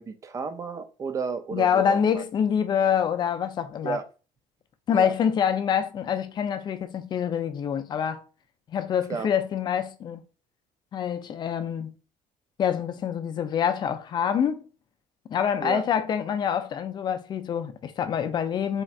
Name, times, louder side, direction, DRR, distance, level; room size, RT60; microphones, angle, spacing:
voice 1, 0.0-2.2 3.8-4.0 4.9-5.1 9.1-9.3 15.6-15.8, right 5 dB, 25° right, 0.4 m, -32 dB
voice 2, 1.5-4.0 4.9-8.2 8.7-10.2 10.9-11.9 12.6-14.6 15.3-18.8, left 8 dB, 35° left, 0.4 m, -26 dB
3.5 x 2.4 x 4.2 m
cardioid pair, 165°, 14 cm